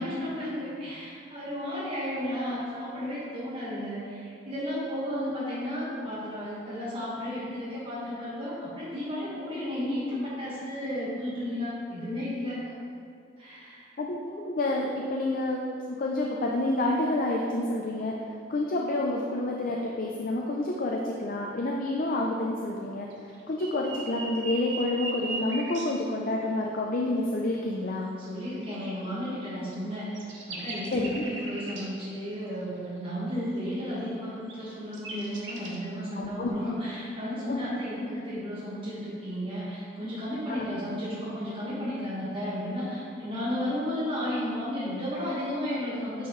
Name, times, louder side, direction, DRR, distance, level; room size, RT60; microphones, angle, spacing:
voice 1, 0.0-12.6 13.4-13.9 28.2-46.3, equal, 30° right, -10 dB, 1.6 m, -33 dB
voice 2, 14.0-18.1 18.5-23.1 23.5-28.1 30.9-31.2 36.2-36.5 37.5-37.8 40.5-40.7, left 2 dB, 50° left, -1 dB, 0.5 m, -29 dB
sound 1, 23.1-25.9 29.7-29.8 30.1-31.8 34.4-34.5 34.9-35.8, right 3 dB, 85° right, 1.1 m, -37 dB
9.2 x 4.5 x 3.1 m, 2.4 s
head